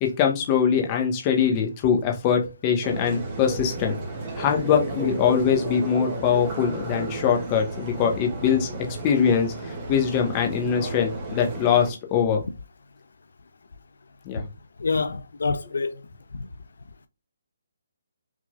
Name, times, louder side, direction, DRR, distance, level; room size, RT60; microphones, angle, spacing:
voice 1, 0.0-4.0 4.4-8.8 9.0-12.4 14.2-14.5, left 7 dB, 20° left, 1.2 m, -23 dB
sound 1, 2.8-11.9, right 2 dB, 20° right, 1.9 m, -33 dB
voice 2, 14.8-15.9, left 4 dB, 75° left, 0.6 m, -26 dB
6.2 x 3.7 x 2.3 m
hypercardioid pair, 165°, 0 cm